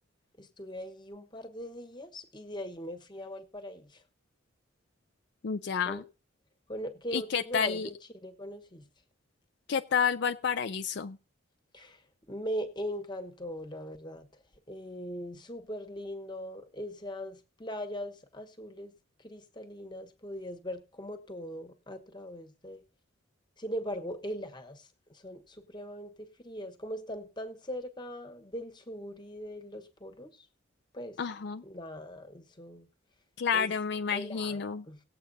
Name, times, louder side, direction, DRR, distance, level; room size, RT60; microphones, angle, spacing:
voice 1, 0.4-4.0 5.8-6.1 6.7-7.9 8.2-8.9 11.7-12.0 12.3-14.3 14.7-18.9 19.2-22.8 23.6-30.3 30.9-31.2 31.6-32.9 33.5-33.7 34.1-35.0, equal, 20° left, 6 dB, 1.2 m, -40 dB
voice 2, 5.4-6.0 7.1-7.9 9.7-11.2 31.2-31.6 33.4-34.8, left 6 dB, 60° left, 8 dB, 0.4 m, -30 dB
19.0 x 7.9 x 2.7 m, 0.35 s
head